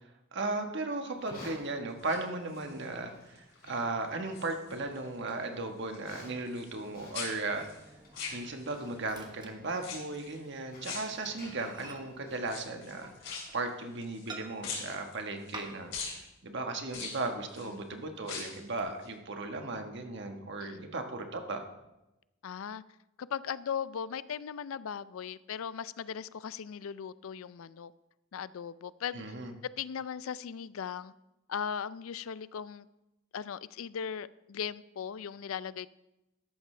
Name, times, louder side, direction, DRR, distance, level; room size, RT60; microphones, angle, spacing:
voice 1, 0.3-7.7 8.3-13.1 13.5-21.6 29.1-29.5, right 2 dB, 60° right, 5 dB, 1.4 m, -36 dB
Livestock farm animals working animals, 1.1-13.3, left 1 dB, 45° left, 4.6 m, -54 dB
sound 1, 1.9-2.9 3.3-3.7 4.0-5.1 5.3-6.9 7.1-8.9 9.8-10.4 10.8-11.7 12.4-14.3 14.6-15.6 15.9-16.2 16.9-17.7 18.2-18.7 19.0-19.1, left 5 dB, 60° left, 4.0 m, -42 dB
Microwave oven, 7.5-10.4 10.7-10.9 11.2-11.3 11.6-13.7 14.3-14.9 15.5-16.1 16.4-16.5 17.0-17.7 18.2-18.8, right 3 dB, 20° right, 1.3 m, -50 dB
voice 2, 22.4-22.8 23.2-27.9 28.3-29.3 29.8-31.1 31.5-32.9 33.3-35.9, left 7 dB, 85° left, 17 dB, 0.4 m, -38 dB
13.5 x 11.5 x 3.3 m, 0.95 s
head